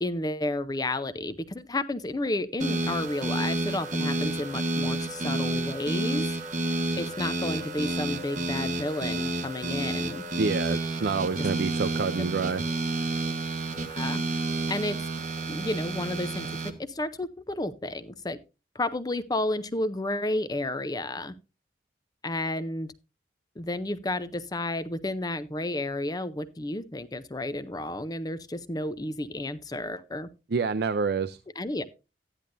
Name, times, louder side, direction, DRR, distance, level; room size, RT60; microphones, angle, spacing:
voice 1, 0.0-6.3 7.0-10.2 13.9-14.2 14.7-15.0 15.5-16.5 16.8-18.4 18.7-21.3 22.2-22.9 23.6-30.3 31.6-31.8, left 2 dB, 20° left, 0.5 m, -31 dB
sound 1, 2.6-16.7, right 2 dB, 45° right, 1.3 m, -30 dB
voice 2, 10.4-12.6 30.5-31.4, right 4 dB, 60° right, 0.5 m, -27 dB
13.5 x 10.5 x 2.5 m
head